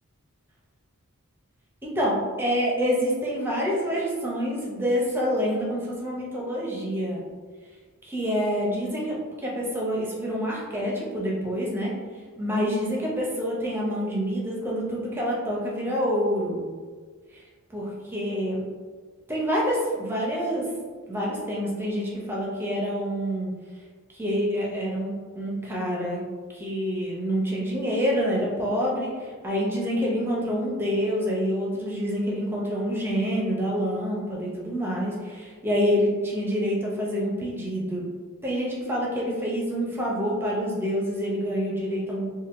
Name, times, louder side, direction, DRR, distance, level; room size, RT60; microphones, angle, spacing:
voice 1, 1.8-7.2 8.1-11.9 12.4-16.6 17.3-17.4 17.7-18.6 19.3-20.7 21.1-23.5 24.1-26.2 26.5-38.1 38.4-42.3, equal, 10° right, -4 dB, 0.5 m, -27 dB
3.5 x 2.2 x 2.5 m, 1.5 s
head